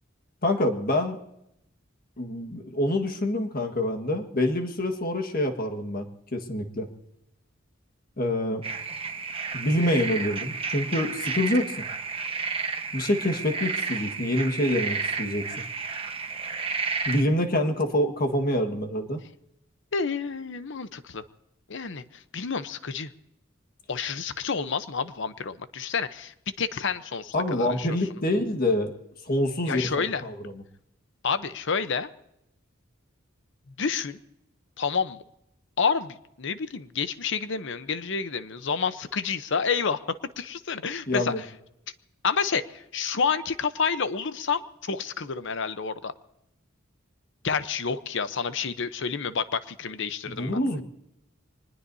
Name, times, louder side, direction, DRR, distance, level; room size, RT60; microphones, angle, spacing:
voice 1, 0.4-1.2 2.2-6.0 6.3-6.9 8.2-8.6 9.5-11.7 12.9-15.4 17.0-19.2 27.3-28.9 29.3-29.8 30.2-30.3 41.1-41.4 50.3-50.8, left 1 dB, 45° left, 4 dB, 1.6 m, -26 dB
sound 1, 8.6-17.2, right 4 dB, 30° right, 1.2 m, -32 dB
voice 2, 19.9-21.2 21.7-23.1 23.9-27.9 29.6-30.2 31.2-32.1 33.8-34.2 34.8-35.2 35.8-40.0 40.4-41.5 42.2-46.1 47.4-50.6, left 5 dB, 65° left, 12 dB, 0.8 m, -29 dB
25.0 x 20.0 x 2.8 m, 0.82 s
head